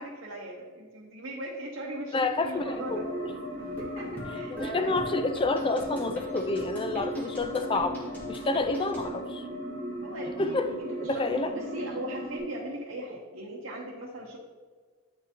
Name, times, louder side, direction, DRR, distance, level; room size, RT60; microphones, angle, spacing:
voice 1, 0.0-3.1 3.8-5.2 10.0-10.6 11.0-14.4, right 1 dB, 75° right, -3 dB, 1.0 m, -39 dB
voice 2, 2.1-3.3 4.5-8.0 8.3-9.4 10.4-10.7 11.0-11.5, left 2 dB, 25° left, 8 dB, 0.3 m, -29 dB
sound 1, 2.5-12.4, equal, 45° right, 1.9 m, -37 dB
sound 2, 3.6-9.1, equal, 10° left, 1.4 m, -45 dB
8.8 x 4.7 x 2.9 m, 1.5 s
head